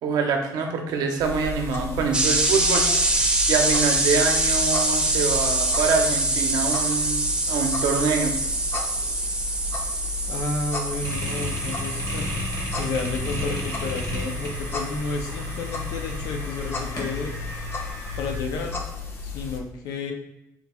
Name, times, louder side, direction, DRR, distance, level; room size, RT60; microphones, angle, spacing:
voice 1, 0.0-2.9 3.5-8.4, right 5 dB, 75° right, 3 dB, 0.6 m, -25 dB
sound 1, 1.2-19.6, left 4 dB, 35° left, 0.5 m, -34 dB
sound 2, 2.1-15.7, right 2 dB, 15° right, 0.5 m, -25 dB
voice 2, 10.3-12.3 12.8-17.4 18.2-18.8 19.2-20.1, left 3 dB, 85° left, 3 dB, 0.5 m, -31 dB
sound 3, 11.0-18.4, equal, 50° left, 0.9 m, -34 dB
3.8 x 2.3 x 2.9 m, 0.89 s
cardioid pair, 110°, 7 cm